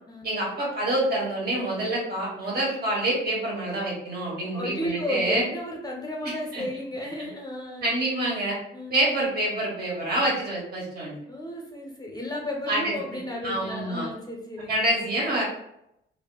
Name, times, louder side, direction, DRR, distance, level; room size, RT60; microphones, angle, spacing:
voice 1, 0.2-5.4 6.5-6.6 7.2-7.3 7.8-8.6 8.9-11.1 12.7-13.0 13.4-14.1 14.7-15.4, right 1 dB, 50° right, -4 dB, 1.3 m, -26 dB
voice 2, 4.5-7.8 8.7-8.9 11.3-14.9, left 1 dB, 20° left, -1 dB, 0.5 m, -33 dB
3.2 x 2.1 x 2.3 m, 0.79 s
cardioid pair, 90°, 20 cm